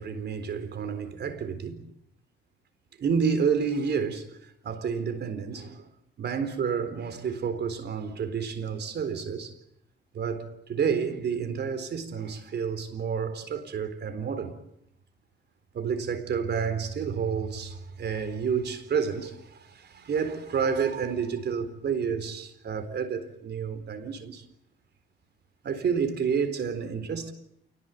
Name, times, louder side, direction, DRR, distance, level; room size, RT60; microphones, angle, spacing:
voice 1, 0.0-1.9 3.0-5.8 6.2-9.5 10.1-14.6 15.7-24.4 25.6-27.3, right 6 dB, 55° right, 4.0 m, -30 dB
28.0 x 19.5 x 9.1 m
cardioid pair, 90°, 20 cm